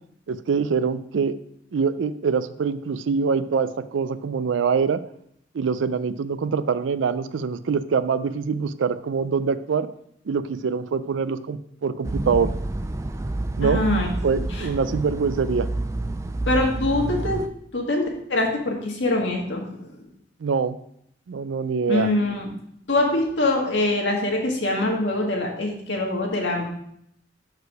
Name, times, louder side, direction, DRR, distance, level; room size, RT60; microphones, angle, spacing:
voice 1, 0.3-1.4 1.7-5.0 5.5-9.9 10.3-12.5 13.6-13.9 14.2-15.7 20.4-20.8 21.3-22.1, right 5 dB, 85° right, 13 dB, 0.4 m, -24 dB
sound 1, 12.0-17.5, right 2 dB, 15° right, 0.3 m, -28 dB
voice 2, 13.6-14.1 14.3-14.7 16.5-17.4 17.7-18.0 18.3-20.0 21.9-22.5 22.9-26.7, left 2 dB, 75° left, 0 dB, 1.6 m, -24 dB
6.6 x 4.8 x 4.6 m, 0.72 s
head